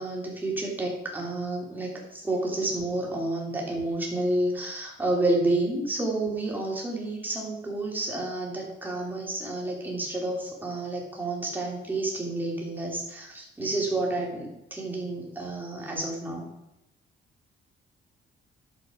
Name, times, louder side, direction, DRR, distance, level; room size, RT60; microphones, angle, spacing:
voice 1, 0.0-16.5, right 2 dB, 10° right, -2 dB, 2.7 m, -30 dB
11.0 x 7.3 x 4.9 m, 0.86 s
cardioid pair, 160°, 20 cm